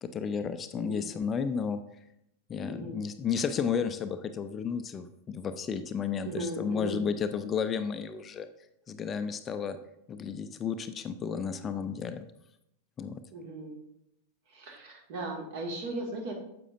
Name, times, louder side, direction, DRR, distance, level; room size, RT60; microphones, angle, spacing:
voice 1, 0.0-1.8 2.5-8.5 8.9-9.8 10.1-12.3 13.0-13.2, left 6 dB, 25° left, 10 dB, 0.4 m, -32 dB
voice 2, 0.7-1.1 2.7-3.0 6.2-7.1 13.3-13.8 14.5-16.3, right 2 dB, 50° right, 1 dB, 1.9 m, -37 dB
9.8 x 7.6 x 2.6 m, 0.79 s
figure-of-eight pair, 90°, 0 cm